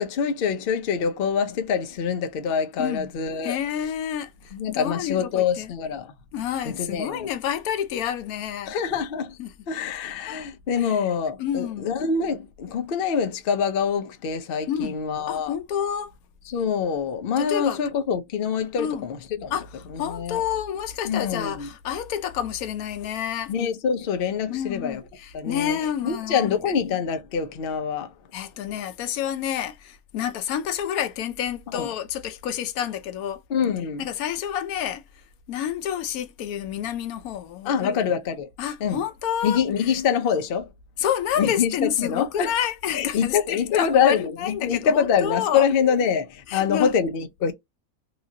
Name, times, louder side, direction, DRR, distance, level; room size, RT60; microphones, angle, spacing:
voice 1, 0.0-3.6 4.5-6.1 6.6-7.3 8.7-9.4 9.7-15.5 16.5-19.5 20.1-20.4 21.0-21.7 23.5-25.0 25.3-25.8 26.0-28.1 31.7-31.9 33.5-34.0 37.6-38.5 38.8-39.0 39.4-40.7 41.4-42.5 42.9-47.5, left 7 dB, 60° left, 0.6 m, -25 dB
voice 2, 2.8-3.1 3.4-5.7 6.3-8.7 9.4-9.5 10.3-10.4 10.8-11.1 11.4-12.0 14.7-15.0 15.3-16.1 17.4-17.8 18.8-19.1 19.5-23.5 24.5-26.8 28.3-33.4 34.0-38.2 38.6-40.0 41.0-45.7 46.5-47.0, left 9 dB, 80° left, 1.0 m, -29 dB
3.0 x 2.4 x 2.6 m
omnidirectional pair, 1.5 m